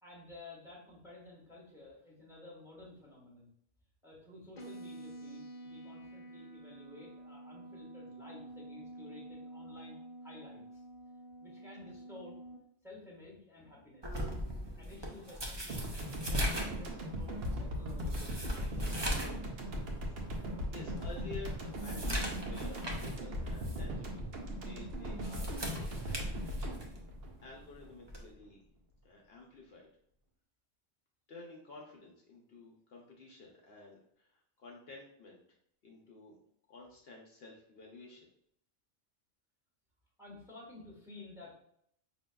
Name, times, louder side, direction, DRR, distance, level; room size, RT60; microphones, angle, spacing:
voice 1, 0.0-3.5 4.0-10.0 10.2-10.8 11.4-12.3 12.8-14.3 14.8-19.0 40.2-41.6, left 2 dB, 5° right, -5 dB, 1.1 m, -53 dB
sound 1, 4.6-12.6, right 1 dB, 45° left, 1.0 m, -49 dB
sound 2, 14.0-19.4 19.8-19.9 20.4-20.5 21.0-23.2 23.6-23.8 25.0-27.0 28.1-28.3, equal, 30° right, 0.5 m, -38 dB
sound 3, 15.7-28.2, equal, 60° right, 0.9 m, -39 dB
voice 2, 20.1-26.6 27.4-28.6 29.0-29.9 31.3-35.4 35.8-36.4 36.7-38.3, left 3 dB, 65° left, -1 dB, 0.8 m, -52 dB
5.3 x 2.8 x 2.2 m, 0.71 s
omnidirectional pair, 1.2 m